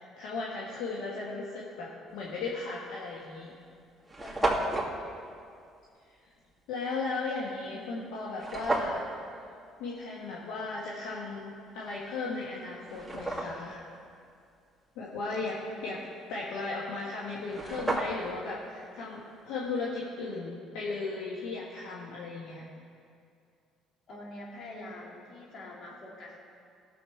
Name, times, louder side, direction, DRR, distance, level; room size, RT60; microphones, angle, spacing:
voice 1, 0.0-3.5 6.7-9.1 9.8-13.8 14.9-22.6, left 3 dB, 75° left, -4 dB, 1.4 m, -36 dB
sound 1, 2.6-2.8 3.5-3.6 3.7-3.8 4.0-4.9 8.4-9.0 11.9-12.0 12.6-13.7 17.1-17.2 17.4-18.4, right 2 dB, 5° left, 2.4 m, -31 dB
voice 2, 4.2-4.9 15.6-15.9 24.1-26.4, left 1 dB, 55° left, -3 dB, 3.0 m, -45 dB
17.0 x 7.1 x 4.8 m, 2.4 s
hypercardioid pair, 65°, 0 cm